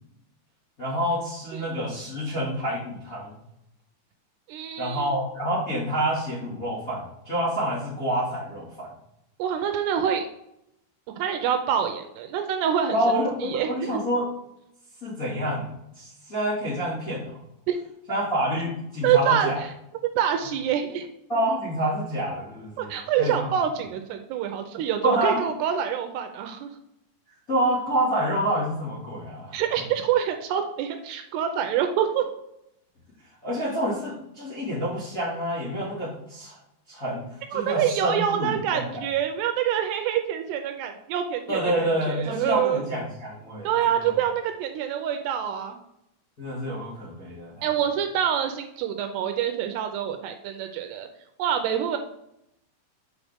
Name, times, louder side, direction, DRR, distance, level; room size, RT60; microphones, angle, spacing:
voice 1, 0.8-3.3 4.8-8.9 12.9-14.3 15.0-17.3 18.1-19.6 21.3-23.5 25.0-25.4 27.5-29.6 33.4-36.6 36.9-39.0 41.5-44.1 46.4-47.7, equal, 30° left, -9 dB, 1.6 m, -28 dB
voice 2, 4.5-5.1 9.4-10.3 11.1-13.0 13.4-14.0 17.7-17.8 19.0-19.5 20.2-21.1 22.8-26.7 29.5-32.3 37.5-42.8 43.6-45.8 47.6-51.1 51.4-52.0, right 9 dB, 80° right, 6 dB, 2.6 m, -26 dB
7.8 x 5.2 x 3.5 m, 0.81 s
omnidirectional pair, 5.1 m